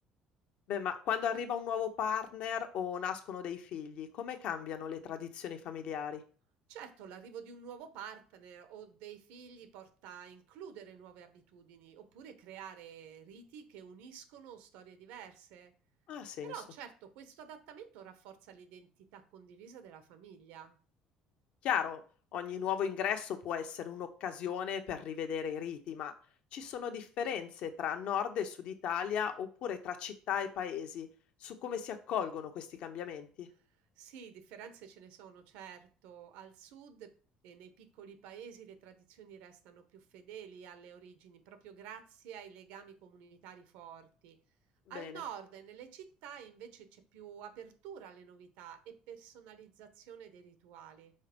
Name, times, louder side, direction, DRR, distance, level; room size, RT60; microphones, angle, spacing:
voice 1, 0.7-6.2 16.1-16.5 21.6-22.0 22.3-26.1 26.5-31.1 31.4-33.5 44.9-45.1, left 8 dB, 60° left, 7 dB, 1.0 m, -36 dB
voice 2, 6.7-15.7 16.4-20.8 34.0-37.1 37.4-44.4 44.9-51.1, right 8 dB, 85° right, 9 dB, 1.1 m, -50 dB
5.6 x 4.2 x 5.3 m, 0.40 s
cardioid pair, 135°, 2 cm